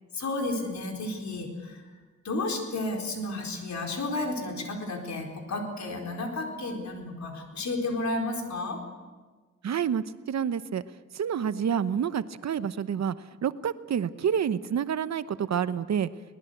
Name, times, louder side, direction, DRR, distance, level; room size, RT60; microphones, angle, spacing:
voice 1, 0.1-1.8 2.2-8.8, left 2 dB, 70° left, 2 dB, 4.5 m, -32 dB
voice 2, 9.6-10.8 11.1-13.1 13.4-16.1, right 8 dB, 65° right, 13 dB, 0.9 m, -28 dB
22.5 x 19.0 x 8.1 m, 1.3 s
wide cardioid pair, 100°, 29 cm